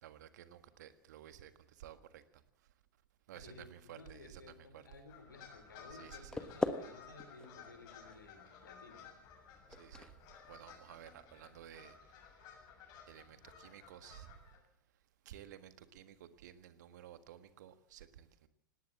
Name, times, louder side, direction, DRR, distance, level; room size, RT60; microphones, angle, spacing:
voice 1, 0.0-2.2 3.3-4.9 5.9-6.3 9.7-10.1 10.5-11.9 13.1-14.4 15.2-18.5, right 11 dB, 55° right, 1.6 m, -54 dB
voice 2, 3.3-9.0, left 3 dB, 80° left, 4.6 m, -56 dB
sound 1, 5.1-14.6, left 6 dB, 40° left, 7.4 m, -57 dB
sound 2, 6.0-11.9, left 2 dB, 5° left, 1.3 m, -44 dB
19.0 x 18.0 x 7.6 m
figure-of-eight pair, 95°, 11 cm